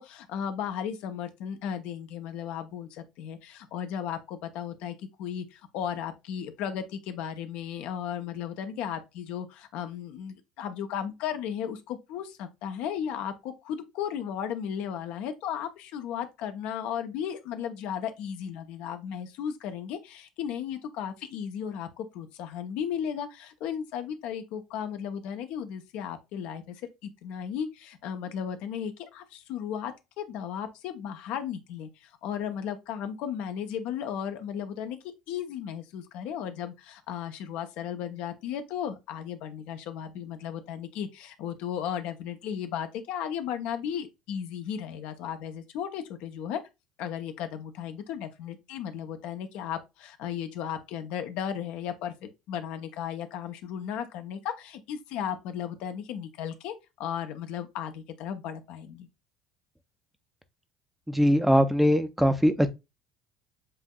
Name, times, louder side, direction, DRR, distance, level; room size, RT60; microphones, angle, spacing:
voice 1, 0.0-35.0 35.3-46.6 47.0-56.7 57.0-59.1, left 8 dB, 60° left, 0.6 m, -35 dB
voice 2, 61.1-62.7, equal, 5° right, 0.6 m, -21 dB
7.5 x 2.6 x 2.2 m
figure-of-eight pair, 60°, 2 cm